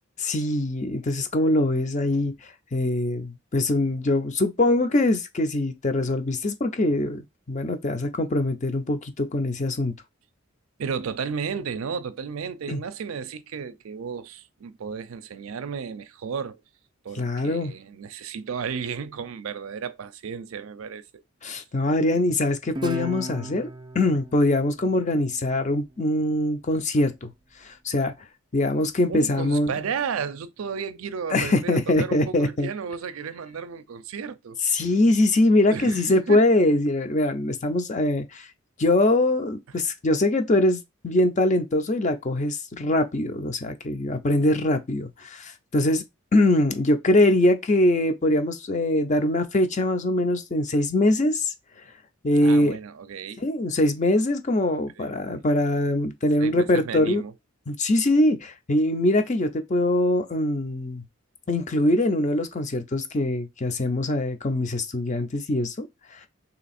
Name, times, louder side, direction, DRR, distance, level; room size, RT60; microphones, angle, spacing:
voice 1, 0.2-2.3 2.7-9.9 12.7-12.8 17.2-17.7 21.4-23.7 23.9-27.3 27.6-28.1 28.5-29.7 31.3-32.7 34.6-38.5 38.8-46.0 46.3-51.5 52.2-52.8 53.4-57.2 57.7-61.0 61.5-65.9 66.1-66.3, left 1 dB, 35° left, 0.5 m, -23 dB
voice 2, 10.8-16.6 17.0-21.2 21.5-21.6 29.1-34.6 35.7-36.4 52.4-53.5 55.0-55.5 56.4-57.3, right 6 dB, 80° right, 0.4 m, -33 dB
Guitar, 22.7-26.0, right 1 dB, 20° right, 0.5 m, -37 dB
3.3 x 2.9 x 4.1 m
head